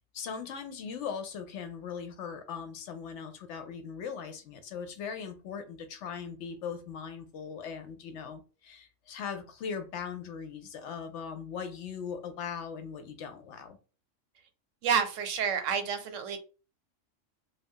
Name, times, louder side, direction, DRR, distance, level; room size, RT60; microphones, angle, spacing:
voice 1, 0.1-13.8, left 6 dB, 70° left, 0.8 m, -39 dB
voice 2, 14.8-16.4, right 7 dB, 80° right, 1.0 m, -29 dB
2.4 x 2.2 x 3.6 m
omnidirectional pair, 1.3 m